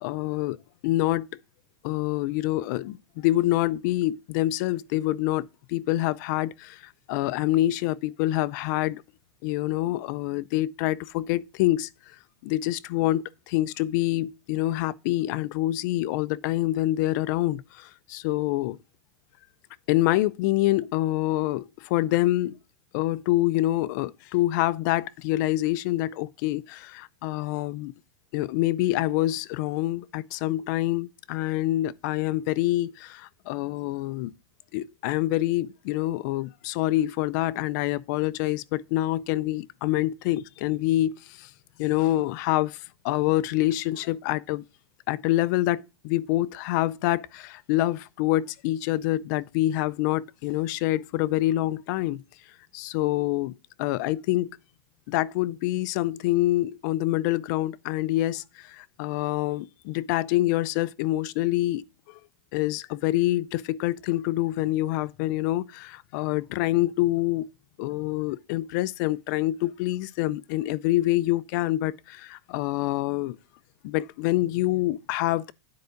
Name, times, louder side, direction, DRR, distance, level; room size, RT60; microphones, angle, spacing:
voice 1, 0.0-0.6 0.8-1.3 1.8-6.8 7.1-9.0 9.4-11.9 12.4-18.8 19.9-22.6 22.9-27.9 28.3-34.3 34.7-41.5 41.8-44.6 45.1-52.2 52.7-54.6 55.1-62.2 62.5-67.5 67.8-73.4 73.8-75.5, left 16 dB, 45° left, 0.4 m, -26 dB
9.5 x 4.6 x 5.0 m
supercardioid pair, 165°, 13 cm